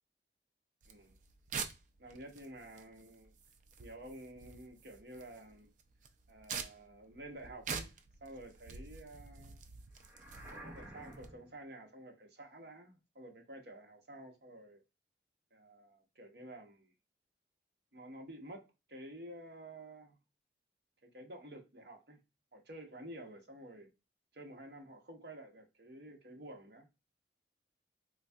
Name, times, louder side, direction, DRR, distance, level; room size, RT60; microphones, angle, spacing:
sound 1, 0.8-11.3, right 5 dB, 45° right, 0.4 m, -47 dB
voice 1, 0.9-1.2 2.0-3.3 3.8-5.7 6.3-7.9 8.2-9.6 10.5-14.8 15.5-16.9 17.9-20.2 21.0-22.2 22.5-23.9 24.3-26.9, right 1 dB, 60° right, 0.9 m, -51 dB
sound 2, 10.0-11.6, right 1 dB, 10° right, 0.7 m, -51 dB
3.8 x 2.6 x 2.3 m
head